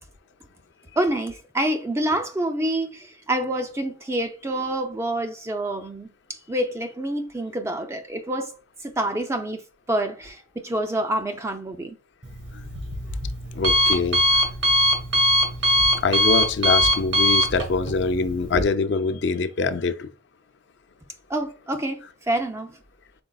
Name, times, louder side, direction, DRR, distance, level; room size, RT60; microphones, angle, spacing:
voice 1, 1.0-8.5 8.8-9.6 9.9-12.0 21.3-22.8, right 1 dB, 15° right, 0.4 m, -27 dB
Alarm, 12.2-18.6, equal, 60° right, 1.3 m, -22 dB
voice 2, 13.6-14.2 16.0-20.1, left 4 dB, 55° left, 0.4 m, -24 dB
5.1 x 4.0 x 2.3 m
head